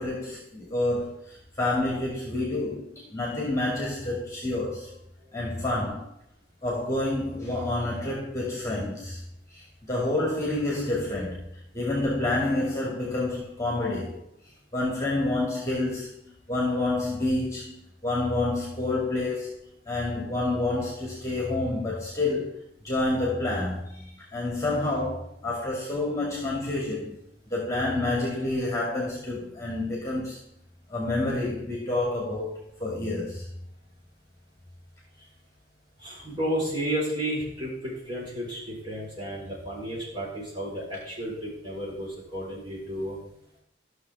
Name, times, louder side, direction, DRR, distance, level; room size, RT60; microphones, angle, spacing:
voice 1, 0.0-4.9 5.3-6.1 6.6-9.2 9.5-11.5 11.7-14.2 14.7-16.1 16.5-19.6 19.9-22.6 22.8-27.2 27.5-30.4 30.9-33.4, left 2 dB, 15° left, -4 dB, 2.3 m, -28 dB
voice 2, 36.0-43.2, right 1 dB, 25° right, -7 dB, 4.4 m, -32 dB
13.5 x 6.6 x 3.6 m, 0.74 s
head